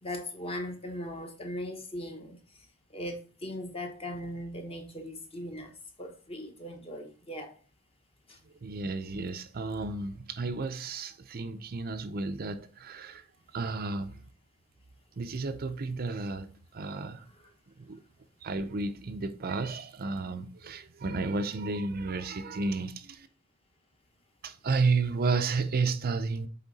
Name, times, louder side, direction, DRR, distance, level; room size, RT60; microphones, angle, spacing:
voice 1, 0.0-2.4 2.9-5.7 6.0-7.5 8.3-8.4 17.4-17.5, left 1 dB, 25° left, 1.0 m, -39 dB
voice 2, 8.6-13.2 13.5-14.1 15.2-16.5 16.7-17.2 17.8-18.0 18.4-23.3 24.4-26.5, right 4 dB, 45° right, 0.5 m, -32 dB
8.2 x 3.6 x 4.1 m
head